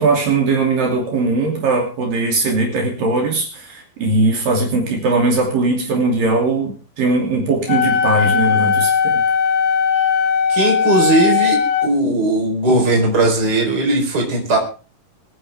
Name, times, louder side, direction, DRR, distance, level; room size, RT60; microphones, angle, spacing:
voice 1, 0.0-9.2, right 3 dB, 60° right, 0 dB, 4.4 m, -19 dB
Wind instrument woodwind instrument, 7.7-11.9, left 6 dB, 65° left, 2.9 m, -17 dB
voice 2, 10.5-14.6, right 2 dB, 25° right, 1 dB, 4.5 m, -18 dB
24.0 x 10.5 x 3.6 m, 0.35 s
omnidirectional pair, 4.5 m